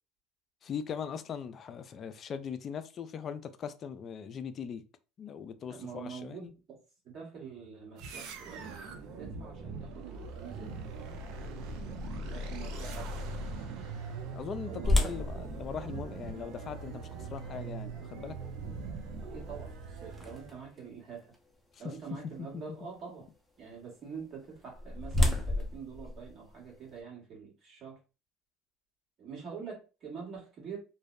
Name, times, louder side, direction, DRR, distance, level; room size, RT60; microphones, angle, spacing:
voice 1, 0.6-4.8 5.2-6.5 14.3-18.4 21.7-21.8 22.5-22.6, left 7 dB, 40° left, 0.3 m, -40 dB
voice 2, 5.7-6.8 7.0-10.8 12.0-13.1 14.6-15.1 19.3-21.3 21.8-23.3 23.6-28.0 29.2-30.8, right 6 dB, 45° right, 1.4 m, -45 dB
sound 1, 8.0-20.6, right 3 dB, 65° right, 0.5 m, -41 dB
sound 2, 14.8-20.8 21.3-21.4 22.0-22.3 24.3-27.0, left 2 dB, ahead, 0.6 m, -33 dB
2.6 x 2.0 x 2.3 m
hypercardioid pair, 85°, 0 cm